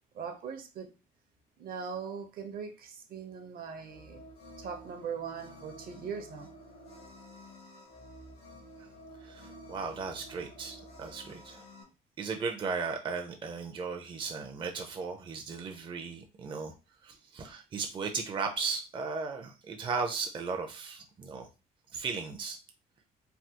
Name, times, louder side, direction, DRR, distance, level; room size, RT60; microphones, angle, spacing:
voice 1, 0.1-0.9 1.6-4.2 4.6-6.5, right 6 dB, 60° right, 0.8 m, -40 dB
sound 1, 3.8-11.8, equal, 75° left, 1.1 m, -51 dB
voice 2, 9.2-11.6 12.2-16.7 17.0-21.5 21.9-22.6, right 5 dB, 30° right, 0.5 m, -36 dB
3.4 x 2.3 x 2.8 m
cardioid pair, 120°, 17 cm